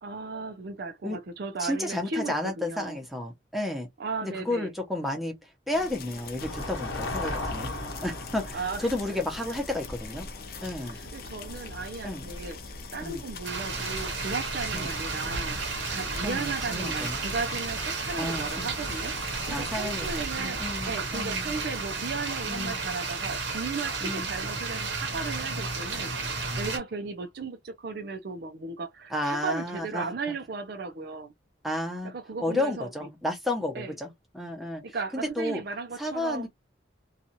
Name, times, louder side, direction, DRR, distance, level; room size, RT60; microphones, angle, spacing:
voice 1, 0.0-3.0 4.0-4.7 8.5-8.9 10.9-12.6 12.9-26.1 26.6-31.3 32.0-32.9 33.7-33.9 34.8-36.5, right 4 dB, 55° right, 0.4 m, -36 dB
voice 2, 1.6-3.9 4.2-7.7 8.0-10.3 10.6-11.0 12.0-12.3 13.0-13.2 14.7-14.9 16.2-17.2 18.2-18.7 19.5-21.5 22.5-22.8 24.0-24.3 29.1-30.0 31.6-32.1 32.4-35.6 36.0-36.5, left 1 dB, ahead, 0.7 m, -32 dB
sound 1, 5.7-20.3, left 3 dB, 50° left, 0.6 m, -43 dB
sound 2, 6.4-22.4, left 1 dB, 80° left, 1.0 m, -41 dB
sound 3, 13.4-26.8, right 4 dB, 70° right, 0.9 m, -32 dB
2.7 x 2.4 x 2.7 m
head